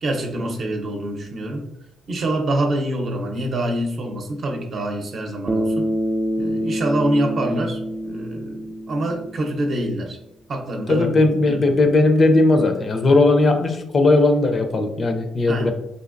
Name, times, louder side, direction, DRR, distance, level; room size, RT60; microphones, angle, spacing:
voice 1, 0.0-1.7 2.1-5.9 6.4-10.2 10.5-11.8 15.5-15.7, right 1 dB, 55° right, 2 dB, 0.7 m, -25 dB
Bass guitar, 5.5-9.8, equal, 25° right, 0.4 m, -26 dB
voice 2, 10.9-15.7, left 2 dB, 40° left, 6 dB, 0.5 m, -17 dB
3.9 x 2.7 x 2.5 m, 0.86 s
cardioid pair, 90°, 0 cm